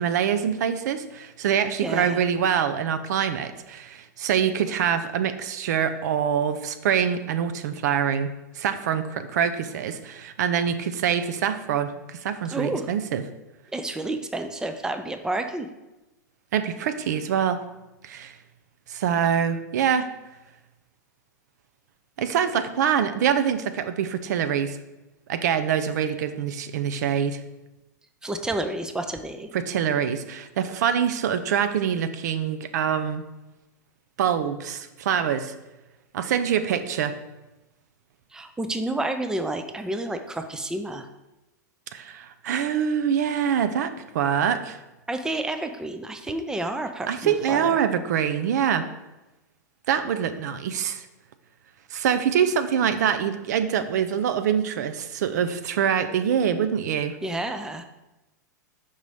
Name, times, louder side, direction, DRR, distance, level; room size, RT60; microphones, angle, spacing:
voice 1, 0.0-8.3 8.6-13.2 16.5-17.6 18.0-18.4 18.9-20.1 22.2-24.8 25.3-27.4 29.5-33.2 34.2-35.5 36.1-37.1 41.9-44.8 47.1-48.8 49.9-51.0 51.9-57.2, right 8 dB, 65° right, 10 dB, 0.5 m, -25 dB
voice 2, 1.8-2.2 12.5-12.9 13.7-15.7 28.2-29.5 38.3-41.1 45.1-47.8 57.2-57.9, right 2 dB, 5° right, 8 dB, 0.5 m, -30 dB
5.4 x 3.9 x 4.8 m, 1.0 s
hypercardioid pair, 100°, 10 cm